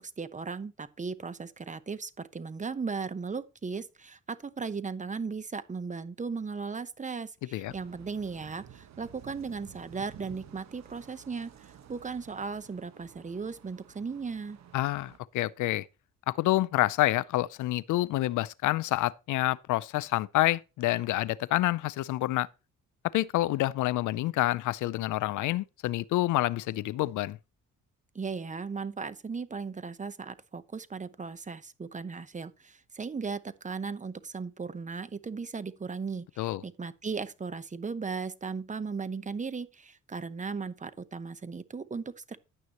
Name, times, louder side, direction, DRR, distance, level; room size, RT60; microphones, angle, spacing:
voice 1, 0.0-14.6 28.1-42.4, right 5 dB, 25° right, 0.9 m, -37 dB
sound 1, 7.6-15.2, right 9 dB, 60° right, 1.3 m, -52 dB
voice 2, 14.7-15.9 16.3-22.5 23.1-27.4 36.4-36.6, left 16 dB, 80° left, 0.5 m, -28 dB
11.0 x 9.4 x 3.0 m
cardioid pair, 90°, 30 cm